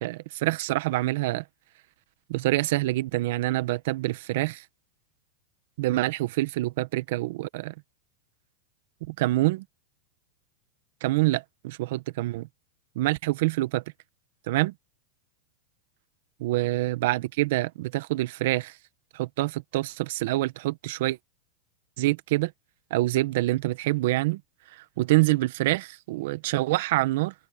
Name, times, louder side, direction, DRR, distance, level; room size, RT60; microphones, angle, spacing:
voice 1, 0.0-1.4 2.3-4.6 5.8-7.7 9.1-9.6 11.0-12.5 12.9-13.8 14.5-14.7 16.4-18.7 19.1-21.2 22.0-22.5 22.9-24.4 25.0-27.3, right 18 dB, 65° right, 1.3 m, -26 dB
supercardioid pair, 125°, 0 cm